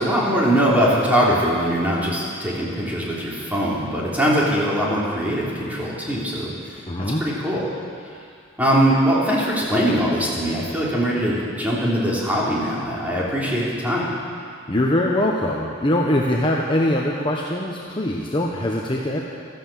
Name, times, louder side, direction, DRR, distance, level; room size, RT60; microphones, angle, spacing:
voice 1, 0.0-6.5 7.0-7.7 8.6-14.1, equal, 10° right, -6 dB, 3.2 m, -21 dB
voice 2, 6.9-7.2 14.7-19.2, left 1 dB, 25° left, -2 dB, 1.0 m, -22 dB
13.5 x 12.0 x 7.5 m, 2.3 s
head